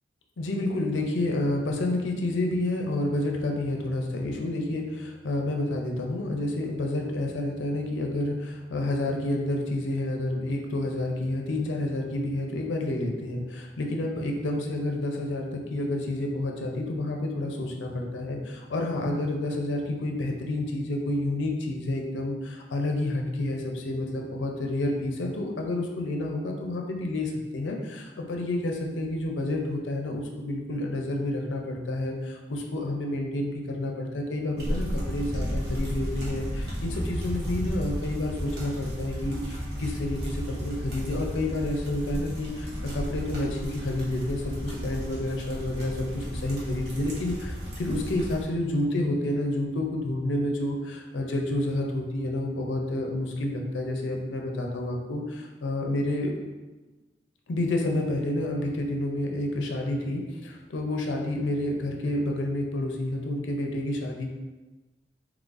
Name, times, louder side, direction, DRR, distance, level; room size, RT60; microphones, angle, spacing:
voice 1, 0.4-56.4 57.5-64.3, left 1 dB, 85° left, 1 dB, 0.5 m, -29 dB
sound 1, 34.6-48.4, equal, 65° right, 1.0 m, -33 dB
3.8 x 3.0 x 2.5 m, 1.2 s
head